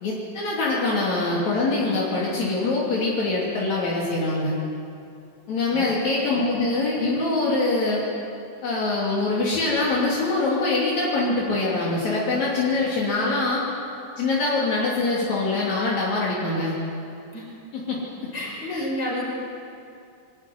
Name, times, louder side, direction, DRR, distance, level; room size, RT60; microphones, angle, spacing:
voice 1, 0.0-4.5 5.5-8.0 8.6-13.6 14.2-16.8 17.7-18.0 18.7-18.9, left 3 dB, 70° left, -6 dB, 4.2 m, -24 dB
voice 2, 18.3-19.2, left 1 dB, 35° left, -3 dB, 6.2 m, -29 dB
23.0 x 14.0 x 9.2 m, 2.5 s
omnidirectional pair, 3.3 m